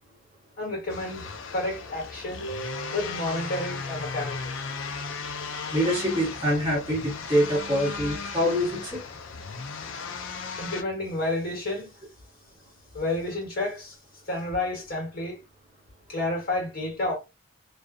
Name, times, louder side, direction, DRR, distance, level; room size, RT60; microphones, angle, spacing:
voice 1, 0.6-4.5 10.6-11.9 12.9-14.0 14.3-15.4 16.1-17.2, left 2 dB, 45° left, 1.2 m, -30 dB
sound 1, 0.9-10.8, left 5 dB, 60° left, 0.4 m, -36 dB
voice 2, 5.7-9.0, equal, 20° right, 1.1 m, -25 dB
2.4 x 2.3 x 2.4 m
head